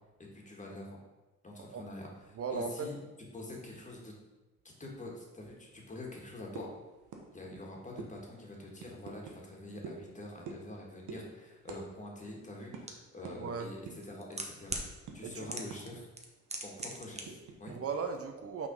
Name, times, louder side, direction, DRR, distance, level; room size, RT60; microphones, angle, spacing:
voice 1, 0.3-1.0 1.4-2.1 2.5-3.0 3.3-4.1 4.6-6.7 7.3-14.8 15.1-16.1 16.6-17.8, left 1 dB, 25° left, -1 dB, 1.8 m, -45 dB
voice 2, 2.3-2.9 13.2-13.7 15.2-15.5 17.7-18.7, right 5 dB, 50° right, 6 dB, 0.6 m, -37 dB
sound 1, 6.6-6.8 7.1-7.3 7.5-7.7 8.0-8.1 8.8-9.4 9.8-10.0 10.5-10.7 11.1-11.2 11.7-11.8 12.1-12.3 12.7-12.8 13.2-13.4 13.9-14.1 14.5-16.0 16.3-16.4 16.8-17.7, right 4 dB, 85° right, 1.1 m, -45 dB
sound 2, 12.9-13.0 13.9-14.9 15.5-15.9 16.2-17.2 17.5-17.6, right 3 dB, 20° right, 1.0 m, -38 dB
6.0 x 3.9 x 5.3 m, 1.1 s
cardioid pair, 90°, 30 cm